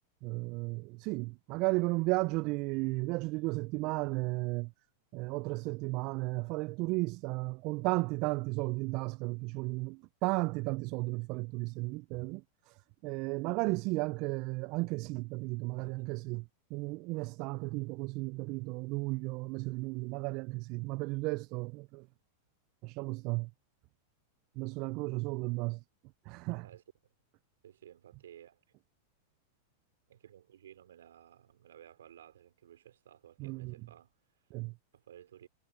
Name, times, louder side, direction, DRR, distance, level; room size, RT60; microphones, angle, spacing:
voice 1, 0.2-4.7 5.1-16.4 16.7-22.1 22.8-23.5 24.6-25.8 26.3-26.7 33.4-33.7 34.5-34.7, right 25 dB, 50° right, 0.4 m, -34 dB
voice 2, 15.7-16.2 26.6-26.8 27.6-28.6 30.1-34.4 34.9-35.5, right 10 dB, 80° right, 4.1 m, -56 dB
hypercardioid pair, 105°, 0 cm